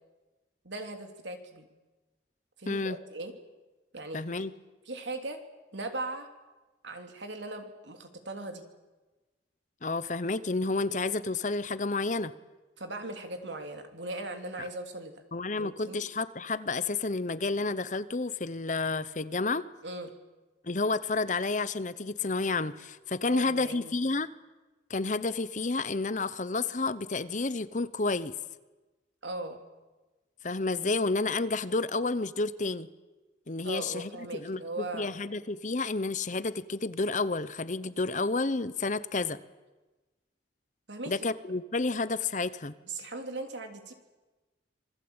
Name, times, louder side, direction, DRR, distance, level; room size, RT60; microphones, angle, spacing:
voice 1, 0.6-1.7 2.6-3.3 3.9-4.3 4.9-5.4 5.7-6.3 6.8-8.6 12.8-15.2 15.6-16.0 19.8-20.1 23.2-24.0 29.2-29.6 33.6-35.1 40.9-41.1 42.8-43.9, right 2 dB, 80° right, 5 dB, 3.1 m, -38 dB
voice 2, 2.7-3.0 4.1-4.5 9.8-12.3 15.3-19.7 20.6-24.3 24.9-28.3 30.4-32.9 33.5-39.4 41.1-42.7, left 3 dB, 40° left, 15 dB, 0.9 m, -30 dB
26.5 x 20.0 x 8.9 m, 1.2 s
head